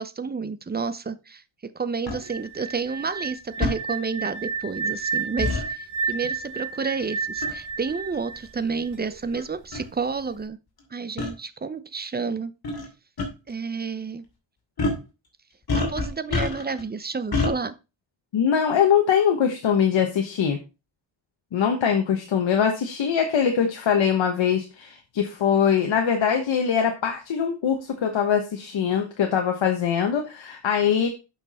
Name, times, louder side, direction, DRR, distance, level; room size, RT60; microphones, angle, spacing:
voice 1, 0.0-10.6 10.9-12.5 13.5-14.2 15.7-17.7, right 5 dB, 20° right, 0.7 m, -30 dB
sound 1, 2.1-2.2 3.6-3.8 5.4-5.6 7.4-7.6 8.4-8.5 9.4-9.5 9.7-9.9 11.2-11.3 12.6-12.9 13.2-13.3 14.8-15.0 15.7-16.8 17.3-17.5, left 3 dB, 55° left, 2.7 m, -25 dB
sound 2, 2.2-9.1, right 5 dB, 40° right, 1.2 m, -31 dB
voice 2, 18.3-20.6 21.5-31.1, left 7 dB, 80° left, 1.3 m, -22 dB
8.0 x 6.0 x 4.2 m
wide cardioid pair, 115°, 45 cm